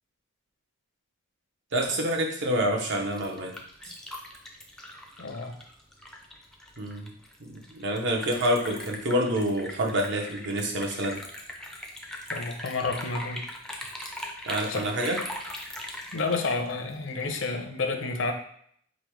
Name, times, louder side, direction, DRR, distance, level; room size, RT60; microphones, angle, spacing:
voice 1, 1.7-3.6 6.8-7.1 7.4-11.2 14.4-15.2, equal, 60° right, 1 dB, 0.8 m, -27 dB
Liquid, 2.9-17.4, left 1 dB, 5° left, 0.4 m, -40 dB
voice 2, 5.2-5.6 12.3-13.5 14.7-14.9 16.1-18.3, left 3 dB, 70° left, 5 dB, 0.6 m, -30 dB
5.1 x 2.1 x 4.5 m, 0.64 s
head